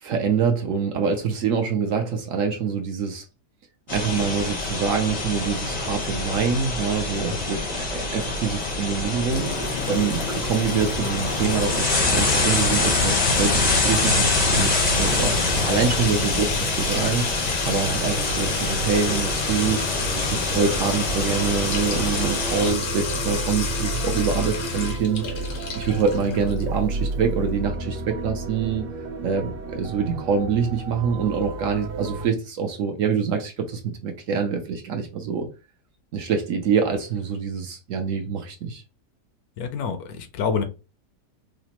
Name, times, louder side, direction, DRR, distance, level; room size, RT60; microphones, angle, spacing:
voice 1, 0.0-3.2 3.9-9.5 9.9-19.8 20.2-25.5 25.7-28.8 29.2-35.5 36.1-38.8, right 6 dB, 65° right, 0.8 m, -25 dB
sound 1, 3.9-22.7, left 2 dB, 40° left, 0.6 m, -25 dB
Sink (filling or washing) / Trickle dribble / Fill (with liquid), 9.3-26.8, left 4 dB, 85° left, 1.6 m, -30 dB
voice 2, 16.1-16.5 39.6-40.6, left 6 dB, 70° left, 1.0 m, -28 dB
sound 2, 18.0-32.3, right 2 dB, 85° right, 1.3 m, -32 dB
4.9 x 2.1 x 2.9 m
omnidirectional pair, 1.8 m